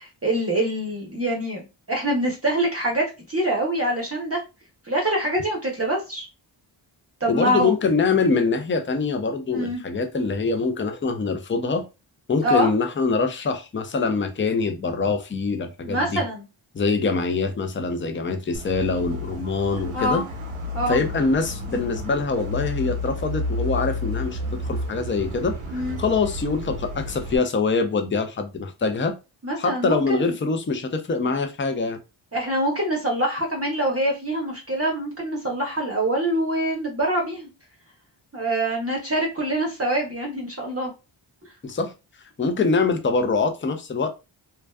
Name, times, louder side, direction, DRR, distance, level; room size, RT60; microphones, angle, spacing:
voice 1, 0.0-4.4 4.8-6.3 7.2-7.7 9.5-9.8 12.4-12.7 15.8-16.4 19.9-20.2 20.7-21.0 25.7-26.0 29.4-30.3 32.3-37.5 38.3-40.9, right 1 dB, 30° right, -1 dB, 0.7 m, -25 dB
voice 2, 7.3-11.8 12.3-16.2 16.7-20.2 20.9-24.4 24.6-29.1 29.6-32.0 41.6-41.9 42.4-44.1, left 4 dB, 25° left, 7 dB, 0.5 m, -24 dB
sound 1, 18.5-27.4, left 2 dB, 85° right, 0.7 m, -31 dB
2.5 x 2.2 x 2.2 m, 0.28 s
cardioid pair, 45°, 50 cm